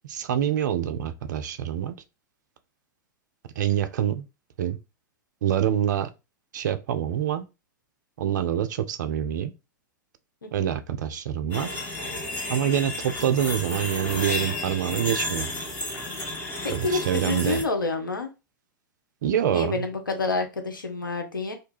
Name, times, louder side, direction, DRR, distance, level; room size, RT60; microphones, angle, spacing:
voice 1, 0.0-1.9 3.6-4.2 4.6-4.8 5.4-6.1 6.5-7.4 8.2-9.5 10.5-11.7 12.5-15.5 16.7-17.6 19.2-19.8, right 10 dB, 60° right, 0.4 m, -26 dB
voice 2, 10.4-10.8 16.6-18.3 19.5-21.5, left 3 dB, 85° left, 0.5 m, -28 dB
sound 1, 11.5-17.6, left 2 dB, 20° left, 1.2 m, -32 dB
2.3 x 2.2 x 3.0 m
figure-of-eight pair, 100°, 11 cm